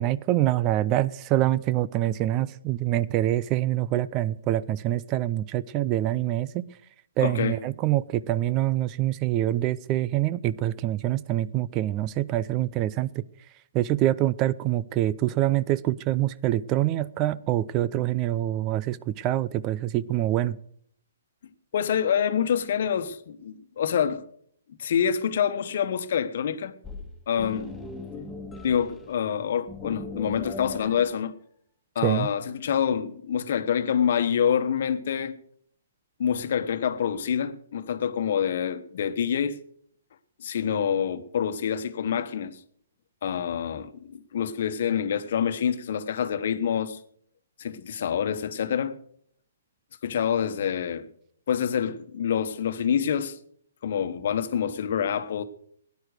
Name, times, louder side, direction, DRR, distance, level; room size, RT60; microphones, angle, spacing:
voice 1, 0.0-6.6 7.2-13.2 13.7-20.6 32.0-32.3, right 14 dB, 30° right, 0.5 m, -25 dB
voice 2, 7.2-7.6 21.7-24.2 24.8-26.7 27.3-27.7 28.6-31.3 31.9-35.4 36.2-39.6 40.4-42.6 43.2-47.0 47.6-49.0 50.0-51.1 51.5-53.4 53.8-55.4, left 8 dB, 55° left, 1.3 m, -26 dB
sound 1, 26.8-29.4 29.7-31.1, left 3 dB, 5° left, 2.0 m, -39 dB
17.5 x 10.5 x 6.5 m
figure-of-eight pair, 125°, 0 cm